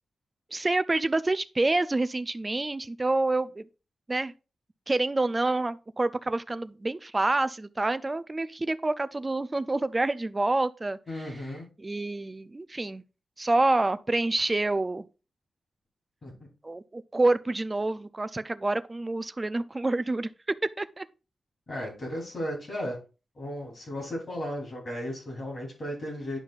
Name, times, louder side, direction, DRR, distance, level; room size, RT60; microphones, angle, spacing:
voice 1, 0.5-3.7 4.1-4.3 4.9-11.0 11.8-13.0 13.4-15.1 16.6-21.0, right 2 dB, 20° right, 0.3 m, -27 dB
voice 2, 11.1-11.6 16.2-16.3 21.7-23.0 23.3-26.4, equal, 35° left, 3.2 m, -35 dB
10.0 x 5.4 x 2.4 m
wide cardioid pair, 175°, 0 cm